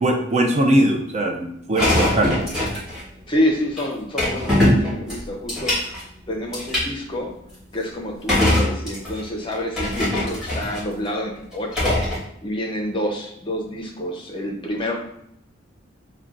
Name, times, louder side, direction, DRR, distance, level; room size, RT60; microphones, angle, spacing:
voice 1, 0.0-2.4, right 1 dB, 35° right, 2 dB, 0.4 m, -20 dB
sound 1, 1.8-3.0 3.8-3.9 4.2-6.0 6.5-6.8 8.3-9.2 9.5-10.8 11.5-12.2, left 1 dB, 5° right, 1.3 m, -21 dB
voice 2, 3.3-5.8 6.3-7.3 7.7-12.0 12.4-14.9, left 1 dB, 25° left, 0 dB, 0.6 m, -27 dB
5.8 x 2.2 x 2.5 m, 0.75 s
head